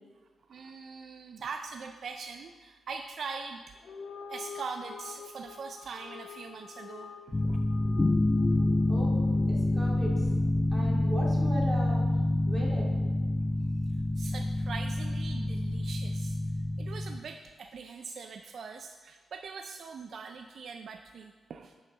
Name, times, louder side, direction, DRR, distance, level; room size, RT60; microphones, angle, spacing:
voice 1, 0.5-3.8 4.3-7.6 14.2-16.4 16.8-21.8, right 5 dB, 65° right, 6 dB, 0.4 m, -42 dB
sound 1, 3.8-10.3, left 6 dB, 70° left, 0.6 m, -47 dB
sound 2, 7.3-17.2, left 1 dB, 20° left, 0.4 m, -27 dB
voice 2, 8.9-9.2 9.5-10.3 10.7-12.0 12.5-12.9, right 1 dB, 20° right, -4 dB, 2.1 m, -37 dB
9.1 x 5.6 x 3.9 m, 1.4 s
cardioid pair, 105°, 0 cm